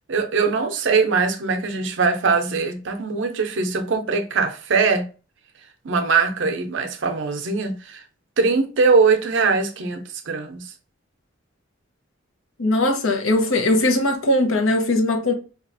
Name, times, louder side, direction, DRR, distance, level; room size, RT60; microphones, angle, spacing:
voice 1, 0.1-5.1 5.8-8.0 8.4-10.7, right 4 dB, 65° right, 0.5 m, -21 dB
voice 2, 12.6-15.3, left 1 dB, 80° left, 0.7 m, -20 dB
4.2 x 2.3 x 2.5 m
head